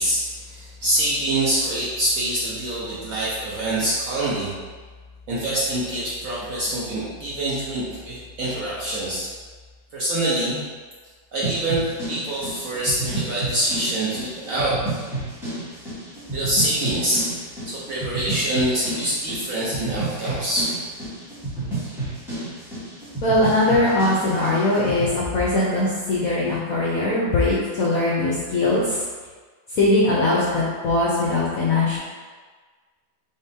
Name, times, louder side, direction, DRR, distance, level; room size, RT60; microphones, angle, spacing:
voice 1, 0.0-4.5 5.3-9.3 9.9-10.6 11.3-14.7 16.3-17.3 17.6-20.8, right 1 dB, 60° right, -8 dB, 0.9 m, -25 dB
sound 1, 11.4-25.1, right 2 dB, ahead, 0.9 m, -31 dB
voice 2, 23.2-29.0 29.7-32.0, left 2 dB, 65° left, -6 dB, 0.8 m, -21 dB
4.0 x 3.6 x 2.7 m, 1.5 s
omnidirectional pair, 2.1 m